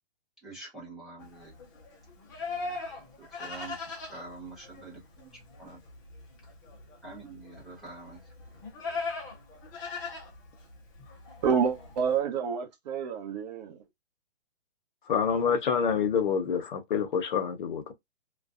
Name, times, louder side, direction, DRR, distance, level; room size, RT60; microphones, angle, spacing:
voice 1, 0.4-1.5 3.2-3.8 4.1-5.3 5.6-5.8 7.0-8.2, right 3 dB, ahead, 0.9 m, -45 dB
Livestock farm animals working animals, 1.2-12.2, left 4 dB, 20° left, 0.5 m, -40 dB
voice 2, 11.4-13.8, right 7 dB, 40° right, 0.8 m, -28 dB
voice 3, 15.1-17.9, left 7 dB, 50° left, 0.7 m, -27 dB
2.4 x 2.2 x 2.3 m
hypercardioid pair, 150°, 31 cm